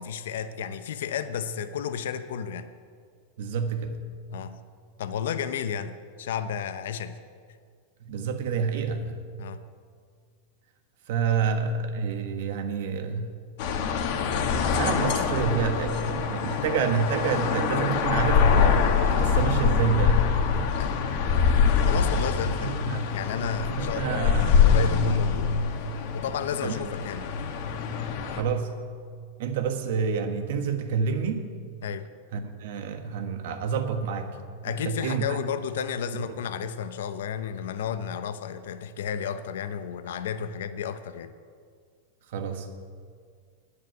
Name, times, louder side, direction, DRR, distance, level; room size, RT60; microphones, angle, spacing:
voice 1, 0.0-2.7 4.3-4.6 5.0-7.2 9.4-9.6 20.8-21.0 21.9-22.7 23.1-25.5 26.1-27.3 31.8-32.1 34.6-41.3, left 7 dB, 80° left, 11 dB, 0.7 m, -32 dB
voice 2, 3.4-4.0 8.0-9.2 11.1-13.4 14.4-20.8 22.6-23.0 23.8-24.6 26.6-26.8 28.3-28.8 29.4-31.5 32.3-34.4 34.7-35.4 42.3-42.7, right 6 dB, 65° right, 7 dB, 1.4 m, -28 dB
sound 1, 13.6-28.4, left 6 dB, 50° left, 1.3 m, -24 dB
9.7 x 8.3 x 9.3 m, 2.1 s
supercardioid pair, 155°, 0 cm